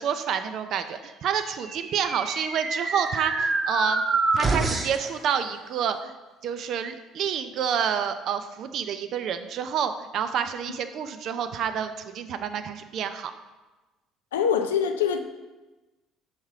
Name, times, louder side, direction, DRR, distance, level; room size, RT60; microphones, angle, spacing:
voice 1, 0.0-4.0 4.3-6.1 6.4-13.3, right 8 dB, 55° right, 9 dB, 0.4 m, -28 dB
sound 1, 1.5-5.1, right 3 dB, 35° right, 0.8 m, -27 dB
voice 2, 14.3-15.2, left 7 dB, 80° left, 7 dB, 0.4 m, -24 dB
5.9 x 3.6 x 4.8 m, 1.2 s
hypercardioid pair, 55°, 0 cm